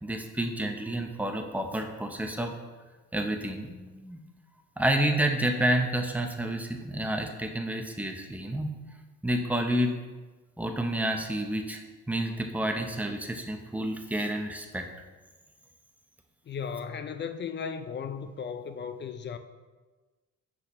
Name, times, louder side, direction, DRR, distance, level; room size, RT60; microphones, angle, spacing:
voice 1, 0.0-2.5 3.1-4.2 4.8-8.7 9.2-9.9 10.6-11.8 12.1-14.9, right 1 dB, 5° right, 0.6 m, -29 dB
voice 2, 16.5-19.4, left 6 dB, 40° left, 0.4 m, -36 dB
6.2 x 5.6 x 3.0 m
cardioid pair, 90°, 30 cm